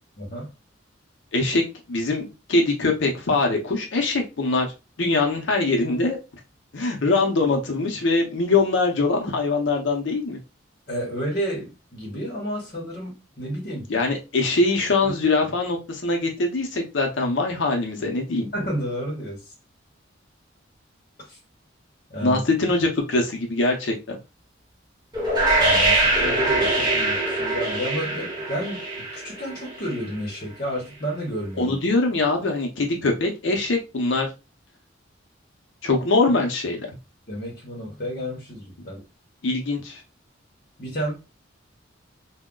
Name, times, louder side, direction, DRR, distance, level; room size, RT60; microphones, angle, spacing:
voice 1, 0.2-0.5 10.9-13.9 15.0-15.3 18.5-19.5 21.3-21.4 22.1-22.4 25.6-31.8 37.3-39.0 40.8-41.1, equal, 45° left, -1 dB, 0.9 m, -31 dB
voice 2, 1.3-4.7 5.0-6.2 6.7-10.4 13.9-18.5 22.2-24.2 31.6-34.3 35.8-36.9 39.4-40.0, left 3 dB, 70° left, 2 dB, 0.6 m, -23 dB
sound 1, 25.1-30.0, right 2 dB, 20° right, 1.0 m, -23 dB
2.2 x 2.1 x 3.7 m, 0.27 s
head